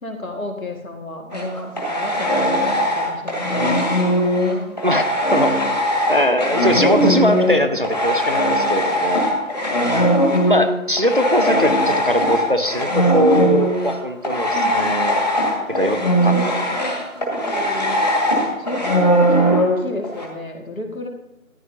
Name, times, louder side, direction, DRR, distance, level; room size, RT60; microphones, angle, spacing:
voice 1, 0.0-3.8 9.7-10.2 14.5-14.9 15.7-18.1 18.6-21.1, left 2 dB, 75° left, 3 dB, 2.1 m, -32 dB
sound 1, 1.3-7.6 7.8-20.3, equal, 30° left, 1.9 m, -20 dB
voice 2, 5.3-5.6 6.1-9.2 9.9-15.2 15.7-16.3, equal, 40° right, 8 dB, 0.7 m, -21 dB
14.0 x 10.0 x 2.8 m, 0.88 s
figure-of-eight pair, 170°, 42 cm